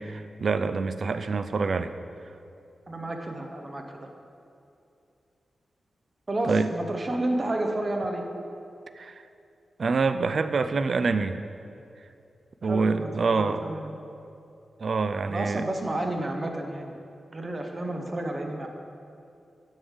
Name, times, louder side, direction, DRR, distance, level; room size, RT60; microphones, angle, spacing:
voice 1, 0.0-1.9 6.5-6.7 9.0-9.2 9.8-11.4 12.6-13.7 14.8-15.6, right 4 dB, 45° right, 11 dB, 0.3 m, -26 dB
voice 2, 2.9-4.1 6.3-8.2 12.6-13.9 15.3-16.9 17.3-18.7, right 1 dB, 25° right, 3 dB, 0.7 m, -31 dB
10.5 x 3.6 x 7.0 m, 2.6 s
wide cardioid pair, 175°, 0 cm